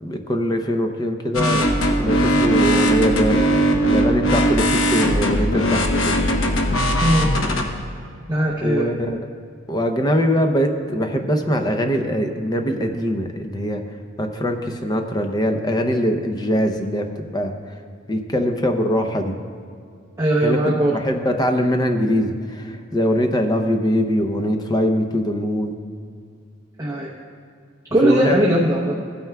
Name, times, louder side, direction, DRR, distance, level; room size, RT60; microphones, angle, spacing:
voice 1, 0.0-1.7 2.0-3.5 3.9-6.2 8.6-9.3 9.7-13.8 14.2-17.8 18.1-19.3 20.4-25.7 28.0-28.4, equal, 20° left, 5 dB, 0.6 m, -22 dB
sound 1, 1.3-7.6, equal, 85° left, 1.0 m, -19 dB
voice 2, 8.3-8.9 20.2-21.0 26.8-27.1 27.9-28.9, right 1 dB, 15° right, -4 dB, 0.7 m, -19 dB
16.0 x 9.1 x 2.3 m, 2.3 s
head